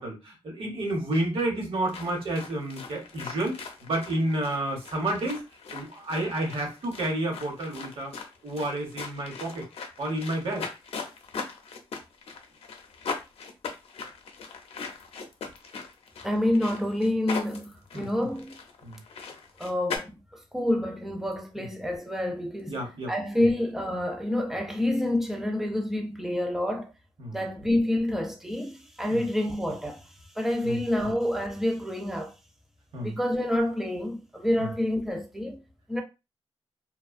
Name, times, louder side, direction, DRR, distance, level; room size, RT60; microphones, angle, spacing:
voice 1, 0.0-5.4 5.7-8.1 8.4-9.6 10.0-10.7 17.9-18.1 18.8-19.0 21.6-21.7 22.7-23.1 23.4-23.5 27.2-27.4 29.1-29.2 30.6-30.8 32.9-33.1 34.6-34.7, right 1 dB, 70° right, 1.0 m, -30 dB
sound 1, 1.9-20.0, left 5 dB, 90° left, 0.5 m, -40 dB
voice 2, 16.2-18.6 19.6-22.8 23.1-26.9 27.3-30.1 30.3-32.3 33.0-35.6 35.9-36.0, left 1 dB, 5° right, 0.4 m, -28 dB
2.5 x 2.2 x 2.4 m
wide cardioid pair, 140°, 10 cm